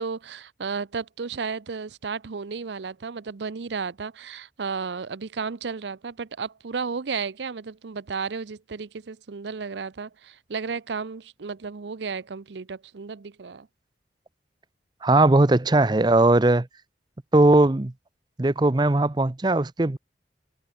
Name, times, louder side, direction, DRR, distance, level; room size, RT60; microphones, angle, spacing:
voice 1, 0.0-13.7, right 5 dB, 75° right, 0.6 m, -33 dB
voice 2, 15.0-16.7 17.3-17.9 18.4-20.0, right 2 dB, 25° right, 0.6 m, -19 dB
head